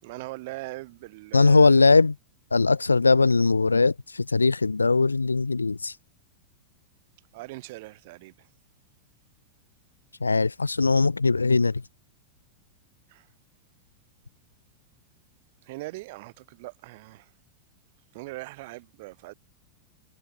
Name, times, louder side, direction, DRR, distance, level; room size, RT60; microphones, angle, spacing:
voice 1, 0.0-1.8 7.3-8.3 13.1-13.2 15.7-17.2 18.1-19.3, right 22 dB, 50° right, 5.2 m, -40 dB
voice 2, 1.3-2.2 2.5-5.9 10.2-11.8, left 3 dB, 80° left, 0.5 m, -20 dB
figure-of-eight pair, 90°, 0 cm